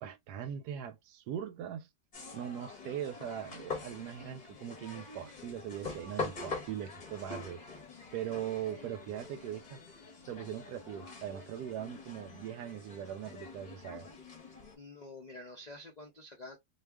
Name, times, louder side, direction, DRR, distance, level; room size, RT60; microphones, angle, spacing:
voice 1, 0.0-1.9 2.3-7.6 8.1-9.8 10.3-14.1, right 10 dB, 80° right, 1.1 m, -40 dB
sound 1, 2.1-14.8, left 4 dB, 35° left, 0.7 m, -44 dB
voice 2, 14.7-16.6, left 2 dB, 70° left, 0.4 m, -48 dB
2.7 x 2.3 x 3.4 m
omnidirectional pair, 1.7 m